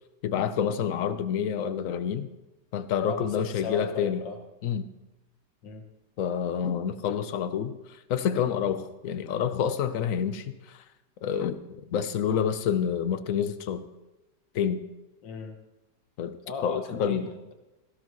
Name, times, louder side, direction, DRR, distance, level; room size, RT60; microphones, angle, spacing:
voice 1, 0.2-2.3 2.7-4.2 4.6-4.9 6.2-7.8 8.1-10.8 11.2-13.9 14.5-14.8 16.2-17.3, left 8 dB, 60° left, 1.0 m, -28 dB
voice 2, 3.1-4.4 5.6-5.8 15.2-15.6 16.5-17.5, left 4 dB, 90° left, 2.0 m, -37 dB
17.5 x 15.5 x 3.1 m
omnidirectional pair, 1.9 m